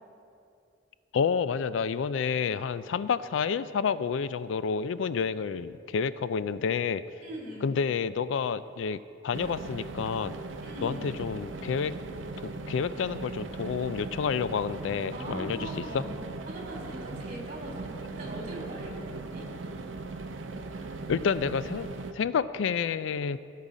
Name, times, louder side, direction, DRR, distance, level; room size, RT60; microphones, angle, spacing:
voice 1, 1.1-7.0 7.6-10.3 10.8-12.0 12.4-16.0 21.1-21.9 22.1-23.4, left 6 dB, 85° left, 15 dB, 0.3 m, -29 dB
voice 2, 7.2-7.7 10.6-11.3 15.1-16.1 16.5-19.4, right 1 dB, 40° right, -2 dB, 2.9 m, -41 dB
sound 1, 9.3-22.1, right 3 dB, 90° right, 0.6 m, -39 dB
17.0 x 5.7 x 5.1 m, 2.5 s
head